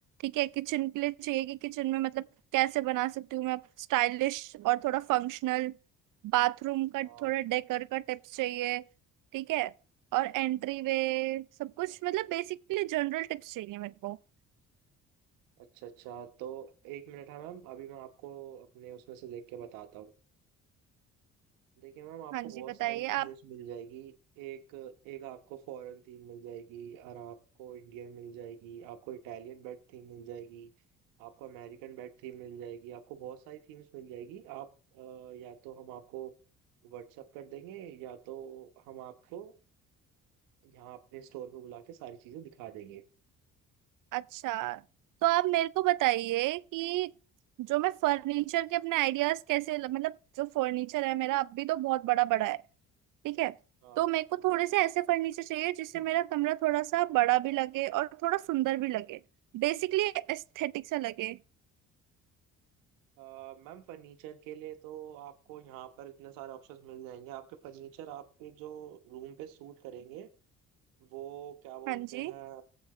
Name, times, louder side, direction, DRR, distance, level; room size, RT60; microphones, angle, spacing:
voice 1, 0.2-2.3 2.5-5.7 6.2-8.8 9.3-9.7 10.1-14.2 22.3-22.5 22.8-23.3 44.1-44.8 45.2-47.1 47.6-52.6 53.2-53.6 54.0-59.2 59.5-61.4 71.9-72.3, right 17 dB, 70° right, 0.5 m, -30 dB
voice 2, 7.0-7.3 15.6-20.1 21.8-30.7 31.2-36.3 36.8-39.5 40.6-43.0 53.8-54.1 55.9-56.0 63.2-70.3 71.0-72.6, right 10 dB, 90° right, 1.3 m, -45 dB
19.0 x 7.9 x 3.2 m
supercardioid pair, 70°, 33 cm